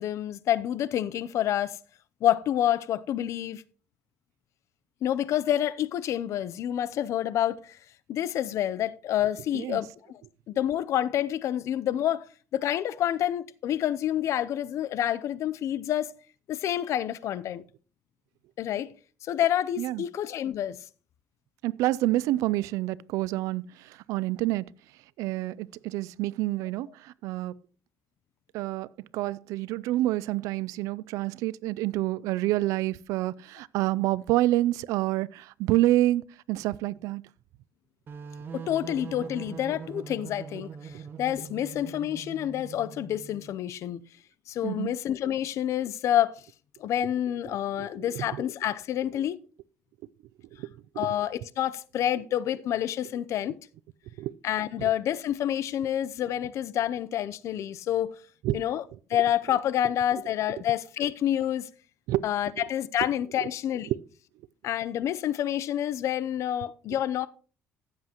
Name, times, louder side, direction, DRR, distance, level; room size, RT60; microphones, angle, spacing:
voice 1, 0.0-1.8 2.2-3.6 5.0-7.8 8.1-10.2 10.5-12.2 12.5-16.1 16.5-17.6 18.6-18.9 19.2-20.8 38.5-40.7 41.2-44.0 44.5-46.4 46.8-49.4 51.0-53.6 54.4-58.1 58.5-58.8 59.1-61.7 62.2-63.9 64.6-67.3, left 11 dB, 65° left, 0.6 m, -28 dB
voice 2, 21.6-24.6 25.2-27.5 28.5-28.9 29.1-37.2 44.6-44.9 47.8-48.2 50.6-50.7 51.0-51.1 54.2-54.3 58.4-58.6 62.1-62.2, right 16 dB, 90° right, 0.3 m, -28 dB
sound 1, 38.1-43.6, right 6 dB, 40° right, 1.1 m, -42 dB
15.5 x 7.6 x 2.9 m
cardioid pair, 115°, 5 cm